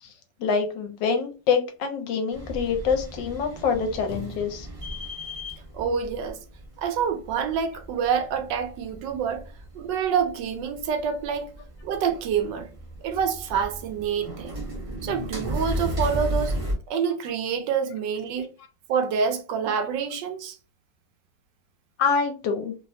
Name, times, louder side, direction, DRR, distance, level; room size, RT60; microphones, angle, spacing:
voice 1, 0.4-4.7 22.0-22.7, left 5 dB, 80° left, 1.3 m, -25 dB
sound 1, 2.3-16.7, equal, 40° right, 0.4 m, -35 dB
voice 2, 5.7-6.4 6.8-9.4 9.7-11.5 11.8-12.7 13.0-14.5 15.0-16.6 16.9-18.5 18.9-20.6, right 7 dB, 80° right, 1.2 m, -27 dB
3.3 x 2.0 x 2.6 m
omnidirectional pair, 2.0 m